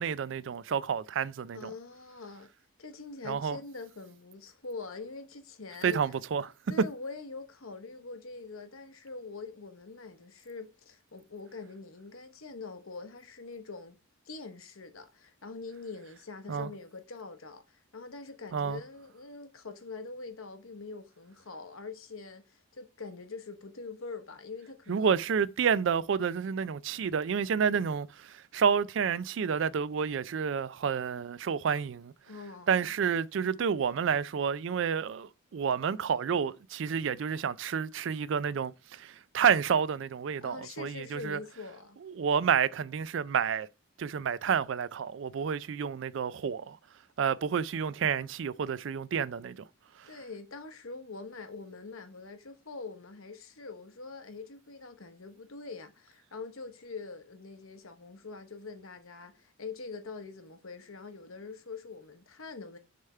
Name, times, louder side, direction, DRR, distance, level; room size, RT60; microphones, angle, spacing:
voice 1, 0.0-1.7 3.3-3.6 5.8-6.5 16.5-16.7 18.5-18.8 24.9-32.1 32.7-41.4 42.0-43.7 44.0-46.8 47.2-49.6 50.0-50.1, right 7 dB, 60° right, 0.3 m, -29 dB
voice 2, 1.5-2.5 2.8-6.0 6.7-14.0 14.2-25.2 32.3-32.9 40.4-42.0 50.1-62.8, left 4 dB, 80° left, 1.0 m, -44 dB
6.5 x 3.5 x 5.5 m
head